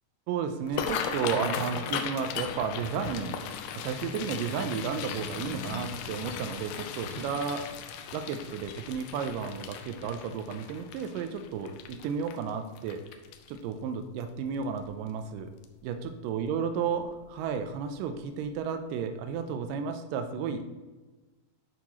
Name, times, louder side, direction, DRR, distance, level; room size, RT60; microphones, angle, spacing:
voice 1, 0.3-3.4 3.8-7.6 8.1-13.0 13.5-15.5 15.8-20.6, right 6 dB, 80° right, 7 dB, 1.9 m, -33 dB
sound 1, 0.6-13.7 14.2-14.5 14.8-15.2 15.6-15.8 17.0-17.2 17.6-17.7 18.2-18.3, left 7 dB, 85° left, 1.9 m, -37 dB
8.5 x 5.6 x 2.9 m, 1.2 s
omnidirectional pair, 4.4 m